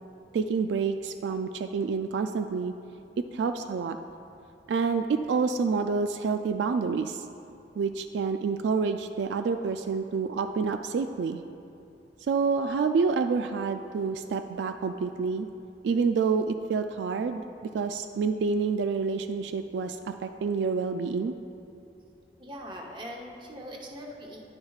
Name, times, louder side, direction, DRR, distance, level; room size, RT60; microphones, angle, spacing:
voice 1, 0.3-2.7 3.3-4.0 4.7-7.2 7.8-11.4 12.3-15.5 15.8-17.4 17.7-21.3, right 5 dB, 80° right, 8 dB, 0.3 m, -28 dB
voice 2, 22.4-24.4, equal, 25° right, 0 dB, 0.9 m, -41 dB
10.5 x 9.6 x 2.4 m, 2.8 s
head